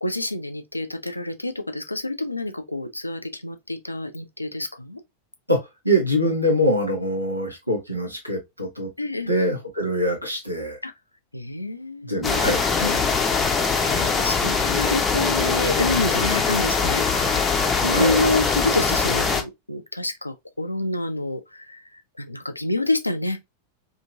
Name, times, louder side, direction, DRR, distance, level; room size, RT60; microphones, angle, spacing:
voice 1, 0.0-5.0 9.0-9.3 10.8-10.9 11.3-12.4 12.8-13.0 13.8-17.5 17.8-23.5, left 2 dB, 85° left, 0.4 m, -28 dB
voice 2, 5.8-8.9 9.3-10.8 12.0-12.6 17.9-18.2, equal, 90° right, 0.9 m, -23 dB
sound 1, 12.2-19.4, left 5 dB, 15° left, 0.6 m, -22 dB
2.8 x 2.5 x 2.6 m
figure-of-eight pair, 90°, 0 cm